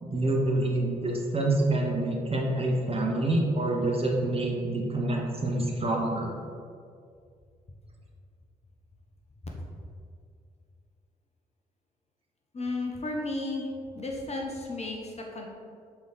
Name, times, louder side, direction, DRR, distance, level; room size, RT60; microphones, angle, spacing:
voice 1, 0.0-6.3, right 2 dB, 30° right, -1 dB, 1.5 m, -27 dB
voice 2, 12.5-13.7 13.9-15.5, left 2 dB, 30° left, 0 dB, 1.1 m, -33 dB
7.8 x 4.0 x 4.6 m, 2.2 s
figure-of-eight pair, 40°, 21 cm